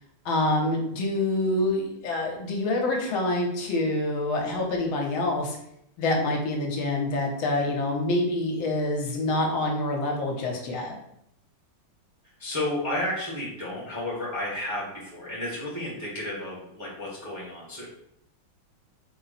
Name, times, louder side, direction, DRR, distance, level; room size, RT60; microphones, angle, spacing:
voice 1, 0.2-5.6 6.0-11.0, left 2 dB, 75° left, 1 dB, 1.5 m, -26 dB
voice 2, 12.4-17.8, left 1 dB, 10° right, -7 dB, 0.9 m, -32 dB
4.2 x 2.0 x 4.0 m, 0.76 s
omnidirectional pair, 2.2 m